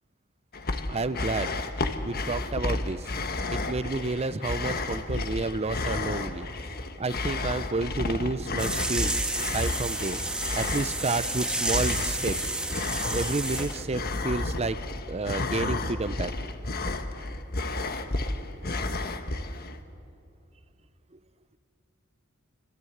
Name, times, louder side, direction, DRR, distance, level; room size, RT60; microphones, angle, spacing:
sound 1, 0.5-19.8, left 2 dB, 45° left, 1.4 m, -32 dB
voice 1, 0.9-1.5 2.0-3.0 3.5-6.5 7.0-9.2 9.5-10.2 10.6-12.4 13.1-14.8 15.1-16.3, right 3 dB, 30° right, 14 dB, 0.7 m, -30 dB
sound 2, 8.6-13.8, right 2 dB, 5° right, 1.9 m, -31 dB
27.5 x 26.0 x 8.0 m, 2.5 s
head